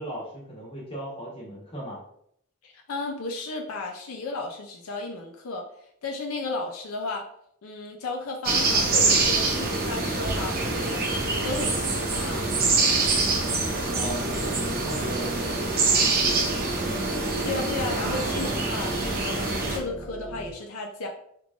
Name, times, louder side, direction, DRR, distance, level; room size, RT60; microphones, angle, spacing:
voice 1, 0.0-2.0 13.9-16.0, equal, 25° left, -4 dB, 1.1 m, -37 dB
voice 2, 2.6-5.6 6.0-7.3 7.6-12.5 17.4-18.9 19.2-21.1, left 3 dB, 85° left, 2 dB, 0.5 m, -34 dB
sound 1, 8.4-19.8, right 3 dB, 45° right, 0.7 m, -25 dB
sound 2, 10.2-20.5, right 1 dB, 10° left, 0.7 m, -38 dB
3.5 x 3.2 x 2.4 m, 0.70 s
head